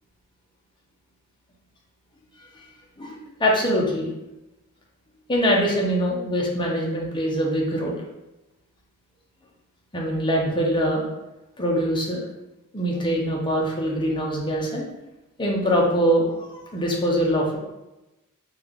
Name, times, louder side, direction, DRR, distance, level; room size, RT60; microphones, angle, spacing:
voice 1, 3.4-4.1 5.3-8.0 9.9-11.0 11.6-12.2 12.7-14.8 15.4-17.6, equal, 20° left, -2 dB, 0.6 m, -23 dB
3.5 x 2.3 x 3.4 m, 0.98 s
head